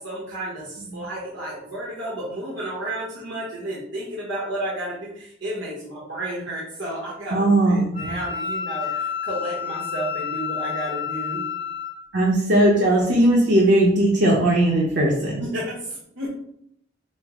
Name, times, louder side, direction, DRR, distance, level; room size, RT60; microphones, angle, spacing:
voice 1, 0.0-11.4 15.4-16.3, right 1 dB, 85° right, -6 dB, 1.0 m, -32 dB
voice 2, 7.3-8.2 12.1-15.4, right 1 dB, 65° right, -3 dB, 0.7 m, -18 dB
Wind instrument woodwind instrument, 7.9-12.0, left 7 dB, 25° left, 0.8 m, -30 dB
5.2 x 2.0 x 3.6 m, 0.74 s
head